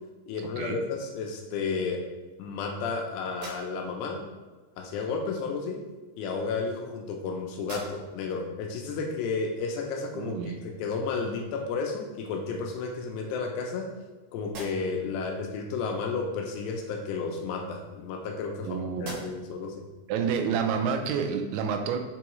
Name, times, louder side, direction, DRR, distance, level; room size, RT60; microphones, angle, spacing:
voice 1, 0.3-2.0 2.4-4.2 4.8-5.8 6.2-13.9 14.3-19.8, left 4 dB, 80° left, 2 dB, 2.7 m, -32 dB
sound 1, 3.3-4.1 5.2-5.4 6.3-7.2 7.6-8.3 8.8-8.9 11.5-11.7 12.1-12.8 13.4-14.1 14.4-15.1 17.1-18.6 18.9-19.6, right 1 dB, 60° right, 1.9 m, -46 dB
voice 2, 10.1-10.6 18.6-19.2 20.1-22.0, right 6 dB, 85° right, 6 dB, 2.9 m, -29 dB
6.9 x 4.7 x 3.0 m, 1.3 s
omnidirectional pair, 5.2 m